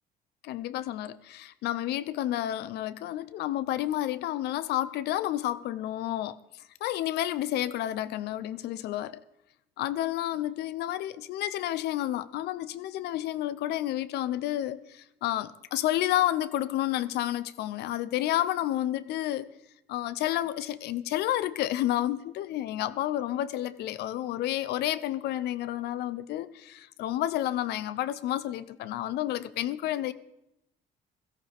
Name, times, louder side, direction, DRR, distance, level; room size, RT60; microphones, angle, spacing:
voice 1, 0.4-9.2 9.8-19.5 19.9-30.1, left 13 dB, 75° left, 0.6 m, -30 dB
16.5 x 13.5 x 3.4 m
cardioid pair, 110°, 17 cm